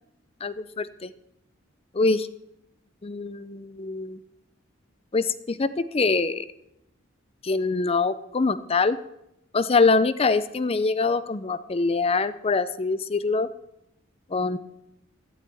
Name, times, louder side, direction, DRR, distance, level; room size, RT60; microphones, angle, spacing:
voice 1, 0.4-1.1 1.9-2.3 3.0-4.2 5.1-6.5 7.4-9.0 9.5-13.5 14.3-14.6, left 4 dB, 30° left, 15 dB, 0.5 m, -24 dB
16.5 x 12.0 x 3.5 m, 0.83 s
head